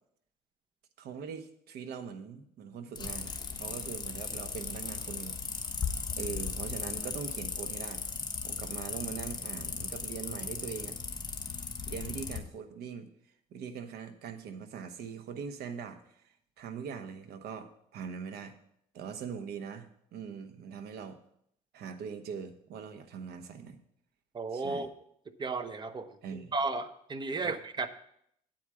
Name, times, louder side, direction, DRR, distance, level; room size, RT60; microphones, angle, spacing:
voice 1, 1.0-5.4 6.2-8.0 8.4-11.0 11.9-13.1 13.5-16.2 16.6-18.6 18.9-21.2 21.7-23.8 24.5-24.9 26.2-26.6 27.4-27.5, right 6 dB, 70° right, 8 dB, 1.0 m, -42 dB
sound 1, 3.0-12.4, left 5 dB, 25° left, 1.1 m, -37 dB
voice 2, 24.3-24.9 25.4-26.1 26.5-27.9, right 3 dB, 25° right, 9 dB, 0.8 m, -33 dB
8.9 x 4.8 x 7.4 m, 0.71 s
cardioid pair, 110°, 17 cm